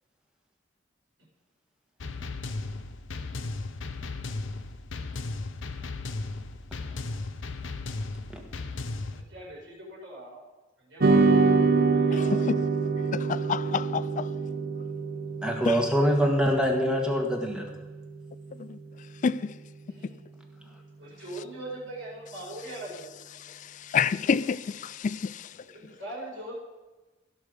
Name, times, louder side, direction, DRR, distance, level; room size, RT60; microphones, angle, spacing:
sound 1, 2.0-9.2, left 3 dB, 80° left, 0.8 m, -35 dB
voice 1, 9.1-10.4 10.8-11.7 11.9-12.5 13.2-13.3 19.9-20.2 21.0-23.0 25.6-26.5, right 1 dB, 70° right, 4.8 m, -41 dB
sound 2, 11.0-19.5, right 4 dB, 50° right, 0.8 m, -26 dB
voice 2, 13.1-14.0 15.7-15.8 19.2-19.4 23.9-25.3, left 6 dB, 40° left, 0.3 m, -27 dB
voice 3, 15.4-17.6, equal, 5° right, 1.6 m, -24 dB
16.0 x 6.4 x 5.2 m
head